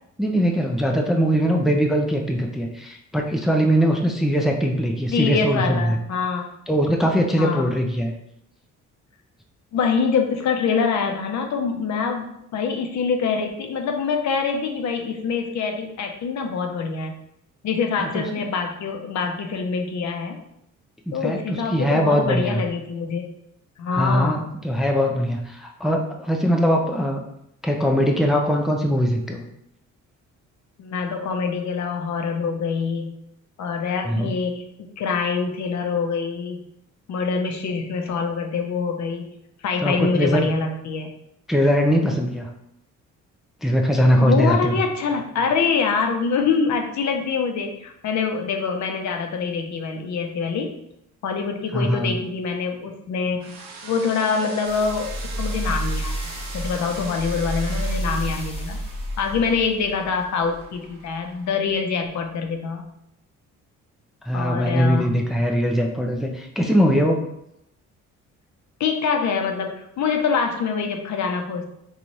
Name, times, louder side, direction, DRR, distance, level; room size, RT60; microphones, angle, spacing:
voice 1, 0.2-6.0 6.7-8.1 18.0-18.2 21.1-22.6 23.9-27.2 27.6-29.4 34.0-34.3 39.8-40.5 41.5-42.5 43.6-44.7 51.7-52.1 64.2-67.2, equal, ahead, 1 dB, 0.4 m, -21 dB
voice 2, 5.1-6.5 7.4-7.7 9.7-17.2 17.6-20.4 21.1-23.3 23.8-24.5 30.8-33.1 33.6-36.6 37.1-39.3 39.6-41.2 44.0-50.8 51.2-58.8 59.2-62.9 64.3-65.2 68.8-71.7, left 5 dB, 65° left, 4 dB, 0.6 m, -25 dB
sound 1, 53.4-61.5, right 4 dB, 65° right, 0.7 m, -41 dB
sound 2, 54.7-61.1 61.7-61.8, right 1 dB, 20° left, 0.8 m, -30 dB
3.1 x 2.3 x 4.0 m, 0.78 s
cardioid pair, 90°, 30 cm